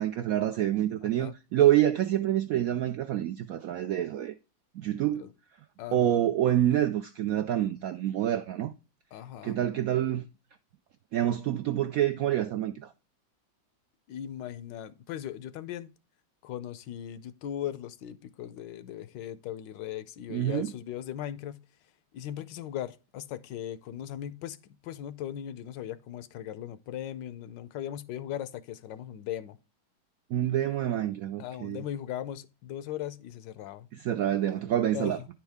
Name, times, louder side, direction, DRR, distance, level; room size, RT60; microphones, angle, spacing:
voice 1, 0.0-4.3 4.8-5.3 5.9-8.7 9.4-10.3 11.1-12.9 20.3-20.7 30.3-31.8 33.9-35.2, right 12 dB, 75° right, 0.8 m, -27 dB
voice 2, 1.0-1.3 5.1-5.3 5.8-6.3 9.1-9.6 14.1-15.9 16.4-21.6 22.1-24.6 24.8-29.6 31.4-33.9 34.9-35.3, left 11 dB, 80° left, 1.3 m, -38 dB
9.8 x 4.6 x 3.4 m
omnidirectional pair, 2.0 m